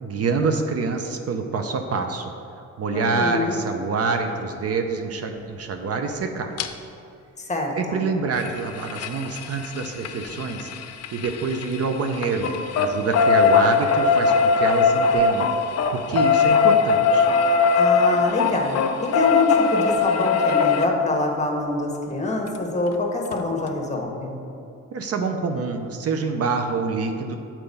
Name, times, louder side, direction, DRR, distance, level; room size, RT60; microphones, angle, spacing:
voice 1, 0.0-2.3 2.8-6.5 7.8-10.7 11.1-12.5 12.8-15.5 15.9-17.3 24.9-27.4, right 4 dB, 55° right, 5 dB, 0.6 m, -26 dB
voice 2, 2.9-3.6 7.4-8.0 17.7-18.8 19.1-24.4, left 2 dB, 25° left, 1 dB, 1.2 m, -25 dB
sound 1, 6.6-6.7 8.3-11.8 12.1-20.9 22.5-22.6 22.9-23.0 23.3-23.4, left 5 dB, 60° left, 0.5 m, -20 dB
6.8 x 4.4 x 5.4 m, 2.7 s
cardioid pair, 90°, 30 cm